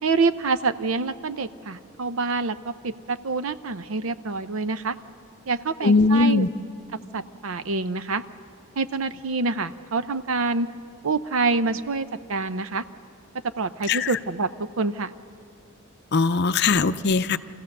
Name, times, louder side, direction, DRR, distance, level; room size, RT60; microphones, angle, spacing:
voice 1, 0.0-4.9 5.5-6.4 7.1-8.2 8.8-10.7 11.0-12.8 13.6-14.5 14.8-15.1, right 4 dB, 75° right, 12 dB, 0.7 m, -26 dB
voice 2, 5.8-6.5 13.9-14.2 16.1-17.4, left 4 dB, 50° left, 11 dB, 0.6 m, -20 dB
25.5 x 15.5 x 6.7 m, 2.6 s
head